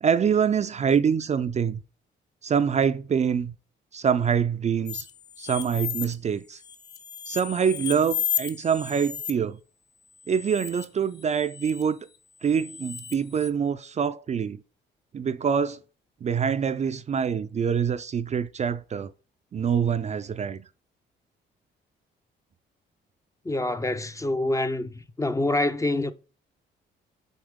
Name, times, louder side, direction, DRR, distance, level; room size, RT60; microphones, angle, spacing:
voice 1, 0.0-1.8 2.4-3.5 3.9-5.1 5.4-6.6 7.3-9.6 10.3-12.0 12.4-14.6 15.1-15.8 16.2-19.1 19.5-20.7, right 7 dB, 35° right, 0.4 m, -25 dB
sound 1, 4.9-6.1 6.5-9.3 10.2-10.8 11.2-11.8 12.4-13.5, left 9 dB, 55° left, 1.0 m, -34 dB
voice 2, 23.5-24.9 25.2-26.1, left 2 dB, 15° left, 0.5 m, -26 dB
7.9 x 4.3 x 3.6 m
cardioid pair, 90°, 20 cm